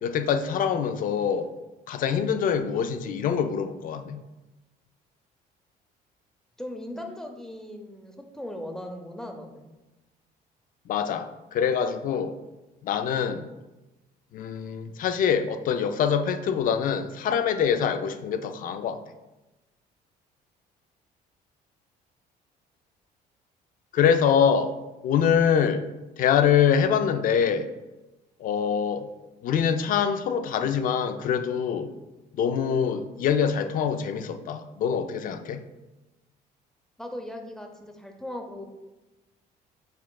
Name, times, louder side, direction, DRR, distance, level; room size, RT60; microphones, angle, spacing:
voice 1, 0.0-1.5 1.9-4.2 10.9-12.3 12.8-13.5 14.3-19.0 23.9-24.7 25.0-25.8 26.2-27.7 28.4-29.1 29.4-31.9 32.4-35.6, left 7 dB, 55° left, 10 dB, 0.4 m, -24 dB
voice 2, 6.6-9.7 37.0-38.7, left 1 dB, 5° left, 3 dB, 0.6 m, -38 dB
6.6 x 3.5 x 2.3 m, 1.1 s
cardioid pair, 110°, 17 cm